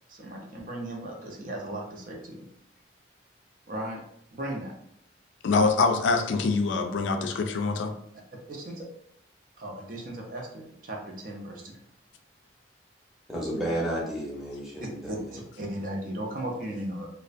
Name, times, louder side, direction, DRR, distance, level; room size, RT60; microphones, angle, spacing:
voice 1, 0.1-2.5 3.7-4.0 4.3-4.7 8.5-8.8 9.6-11.8 15.1-17.1, right 1 dB, 45° right, 0 dB, 0.5 m, -36 dB
voice 2, 5.4-7.9, left 4 dB, 80° left, 4 dB, 0.3 m, -24 dB
voice 3, 13.3-15.4, right 1 dB, ahead, -5 dB, 0.6 m, -32 dB
2.4 x 2.0 x 2.4 m, 0.71 s
head